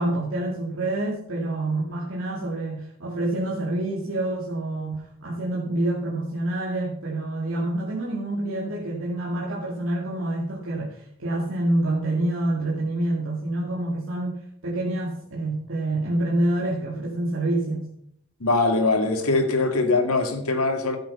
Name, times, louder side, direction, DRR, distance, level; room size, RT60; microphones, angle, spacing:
voice 1, 0.0-14.4 14.6-17.9, right 1 dB, 60° right, -5 dB, 2.3 m, -27 dB
voice 2, 18.4-21.0, left 3 dB, 85° left, 5 dB, 2.0 m, -22 dB
12.0 x 7.8 x 5.6 m, 0.66 s
head